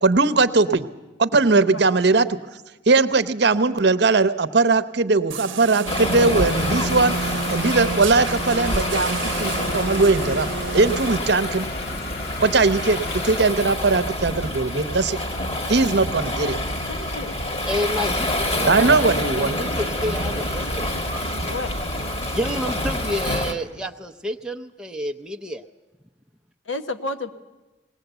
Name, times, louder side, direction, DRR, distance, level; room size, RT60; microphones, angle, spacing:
voice 1, 0.0-0.9 1.2-2.4 2.9-10.5 10.7-11.7 12.4-15.2 15.7-16.6 18.7-19.6, right 3 dB, 60° right, 12 dB, 0.8 m, -19 dB
sound 1, 5.3-11.2, right 4 dB, 90° right, 0.7 m, -30 dB
Waves surf, 5.9-23.5, left 1 dB, 30° left, 1.5 m, -27 dB
sound 2, 6.5-13.4, left 4 dB, 50° left, 0.8 m, -37 dB
voice 2, 16.7-17.4 17.7-17.8 21.5-21.7 26.6-27.3, left 2 dB, 85° left, 9 dB, 1.2 m, -32 dB
voice 3, 17.7-18.7 19.4-20.9 22.2-25.6, equal, 5° right, 4 dB, 0.6 m, -29 dB
20.0 x 18.5 x 8.1 m, 1.1 s
head